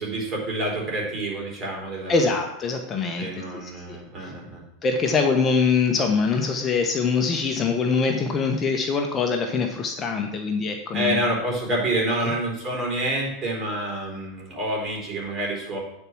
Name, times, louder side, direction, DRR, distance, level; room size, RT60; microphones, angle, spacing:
voice 1, 0.0-2.2 3.2-4.6 10.9-15.8, right 1 dB, 30° right, -2 dB, 4.0 m, -28 dB
voice 2, 2.1-3.3 3.9-4.3 4.8-11.2, left 4 dB, 30° left, 3 dB, 1.1 m, -23 dB
9.7 x 4.7 x 6.1 m, 0.83 s
hypercardioid pair, 90°, 0 cm